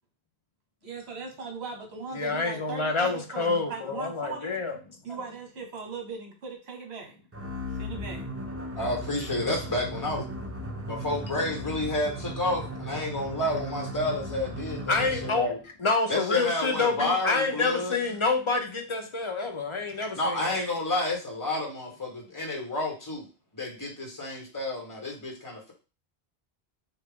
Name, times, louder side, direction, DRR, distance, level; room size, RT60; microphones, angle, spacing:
voice 1, 0.8-4.6 5.0-7.2 7.8-8.3, right 4 dB, 90° right, 2 dB, 1.3 m, -39 dB
voice 2, 2.1-4.8 5.1-5.2 14.9-15.5 15.8-20.6, left 3 dB, 40° left, 3 dB, 0.5 m, -27 dB
sound 1, 7.3-15.6, equal, 20° right, 0.4 m, -36 dB
voice 3, 8.7-10.3 10.9-15.6 16.1-18.0 20.1-23.3 23.5-25.7, left 2 dB, 20° left, -1 dB, 1.1 m, -30 dB
3.6 x 2.4 x 3.5 m, 0.33 s
omnidirectional pair, 1.1 m